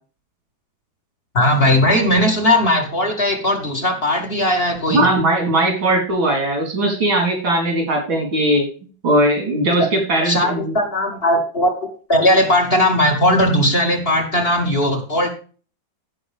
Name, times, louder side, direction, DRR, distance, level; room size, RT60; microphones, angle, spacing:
voice 1, 1.3-5.1 9.8-9.9 10.3-15.3, left 1 dB, 30° left, 2 dB, 2.2 m, -18 dB
voice 2, 4.9-8.6 9.0-10.7, right 1 dB, 90° right, 1 dB, 4.5 m, -19 dB
16.5 x 6.1 x 3.4 m, 0.39 s
omnidirectional pair, 2.1 m